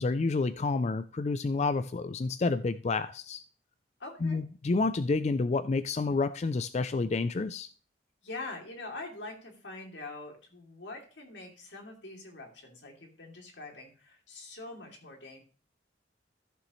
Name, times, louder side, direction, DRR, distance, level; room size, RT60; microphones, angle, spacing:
voice 1, 0.0-3.4 4.2-7.7, left 3 dB, 40° left, 0.3 m, -29 dB
voice 2, 4.0-4.4 8.2-15.4, left 2 dB, 85° left, 2.9 m, -44 dB
14.5 x 6.9 x 3.1 m
head